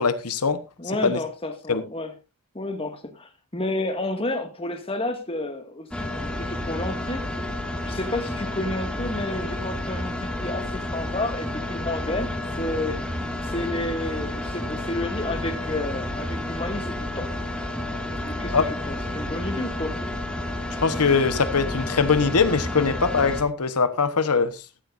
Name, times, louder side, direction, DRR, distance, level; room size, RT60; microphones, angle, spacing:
voice 1, 0.0-0.6 1.0-1.2 1.7-1.8 18.5-18.7 20.8-24.5, left 5 dB, 90° left, 1.2 m, -21 dB
voice 2, 0.8-2.1 2.5-7.3 7.9-13.0 13.4-17.4 18.1-20.0, left 2 dB, 25° left, 2.0 m, -31 dB
sound 1, 5.9-23.4, left 1 dB, 5° left, 2.1 m, -30 dB
14.5 x 14.0 x 2.6 m
head